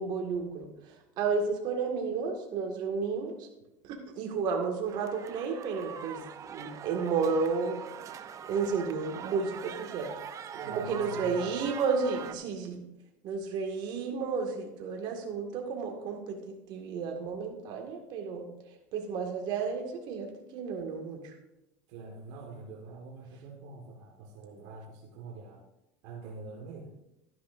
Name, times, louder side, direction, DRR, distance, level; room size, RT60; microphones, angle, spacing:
voice 1, 0.0-3.5 3.8-8.2 8.5-10.1 10.7-12.8 13.2-18.5 18.9-21.4, right 5 dB, 55° right, 2 dB, 2.0 m, -32 dB
sound 1, 4.9-12.4, right 8 dB, 40° right, 0.6 m, -43 dB
voice 2, 10.6-11.7 21.9-25.6 26.0-26.9, right 3 dB, 75° right, -1 dB, 1.7 m, -45 dB
12.5 x 10.0 x 2.6 m, 0.93 s
supercardioid pair, 105°, 9 cm